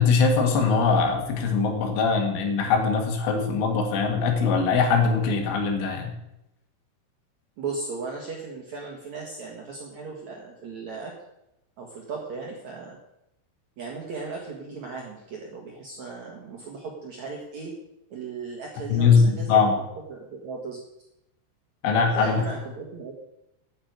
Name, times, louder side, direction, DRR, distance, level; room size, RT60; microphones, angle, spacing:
voice 1, 0.0-6.1 18.9-19.7 21.8-22.4, left 5 dB, 85° left, 3 dB, 4.3 m, -21 dB
voice 2, 7.6-11.1 11.8-13.0 13.8-17.7 18.1-19.6 20.1-20.8 22.1-23.1, right 4 dB, 60° right, 0 dB, 1.9 m, -36 dB
9.0 x 8.7 x 8.0 m, 0.86 s
omnidirectional pair, 5.4 m